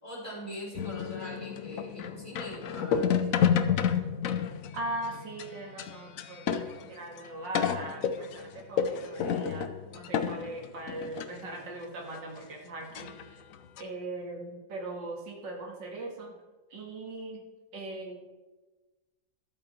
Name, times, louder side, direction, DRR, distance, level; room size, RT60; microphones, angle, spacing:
voice 1, 0.0-3.4, equal, 15° left, -5 dB, 3.9 m, -42 dB
sound 1, 0.8-6.9 7.2-7.3 7.5-11.3 11.8-11.9 12.1-12.2 13.0-13.2 13.5-13.8, left 8 dB, 65° left, 0.8 m, -30 dB
voice 2, 4.7-13.4 13.8-16.3 16.7-17.4 17.7-18.2, right 2 dB, 70° right, 0 dB, 2.7 m, -40 dB
12.5 x 8.3 x 4.5 m, 1.2 s
omnidirectional pair, 2.1 m